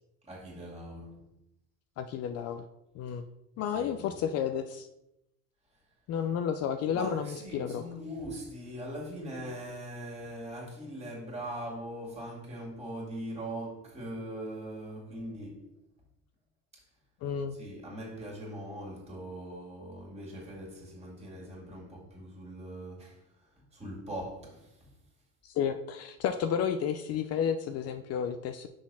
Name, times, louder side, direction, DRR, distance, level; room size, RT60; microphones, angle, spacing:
voice 1, 0.2-1.2 3.7-4.1 6.9-15.7 16.7-16.9 17.5-24.9, right 1 dB, 20° right, 2.4 m, -41 dB
voice 2, 2.0-2.7 2.9-3.2 3.6-4.9 6.1-7.8 17.2-17.6 25.4-28.7, left 8 dB, 45° left, 0.5 m, -31 dB
6.2 x 4.1 x 5.5 m
cardioid pair, 130°, 34 cm